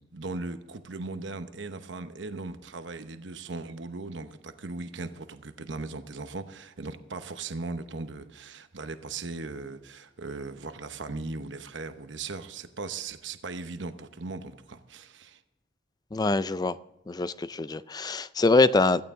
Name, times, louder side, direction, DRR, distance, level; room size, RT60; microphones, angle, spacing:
voice 1, 0.1-15.4, right 3 dB, 70° right, 9 dB, 0.9 m, -38 dB
voice 2, 16.1-16.8 17.1-19.0, left 3 dB, 20° left, 16 dB, 0.4 m, -24 dB
16.0 x 14.5 x 3.7 m, 0.97 s
head